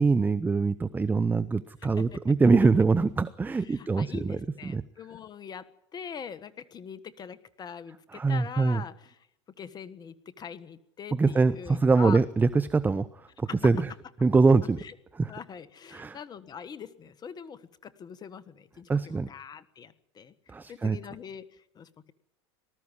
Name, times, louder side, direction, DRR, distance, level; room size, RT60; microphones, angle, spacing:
voice 1, 0.0-4.8 8.1-8.8 11.1-13.9 14.2-14.8 15.2-15.3 15.9-16.2 18.9-19.3 20.5-21.0, right 4 dB, 10° right, 16 dB, 0.7 m, -24 dB
voice 2, 1.8-2.2 3.5-9.2 9.6-12.2 13.4-13.7 14.8-14.9 15.3-22.1, left 7 dB, 25° left, 14 dB, 1.5 m, -43 dB
19.5 x 13.5 x 9.9 m, 0.81 s
hypercardioid pair, 105°, 15 cm